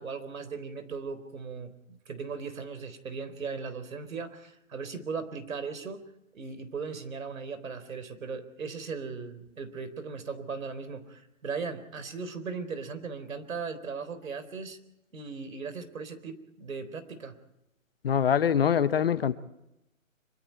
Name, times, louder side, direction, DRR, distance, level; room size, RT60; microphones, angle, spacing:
voice 1, 0.0-6.0 6.3-14.8 15.1-17.3, right 5 dB, 75° right, 11 dB, 4.0 m, -38 dB
voice 2, 18.0-19.3, left 8 dB, 45° left, 14 dB, 1.1 m, -24 dB
26.0 x 24.5 x 4.6 m, 0.86 s
hypercardioid pair, 160°, 41 cm